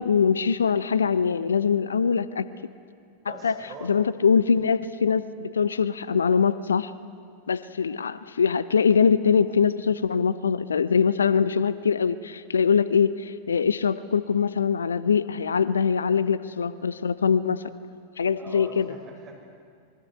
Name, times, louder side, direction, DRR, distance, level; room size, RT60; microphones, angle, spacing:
voice 1, 0.0-2.5 3.2-6.9 7.5-17.6 18.2-18.9, left 6 dB, 70° left, 16 dB, 0.7 m, -23 dB
voice 2, 3.2-3.9 18.4-19.4, right 2 dB, 25° right, 0 dB, 7.0 m, -43 dB
27.0 x 22.5 x 8.2 m, 2.3 s
figure-of-eight pair, 90°, 0 cm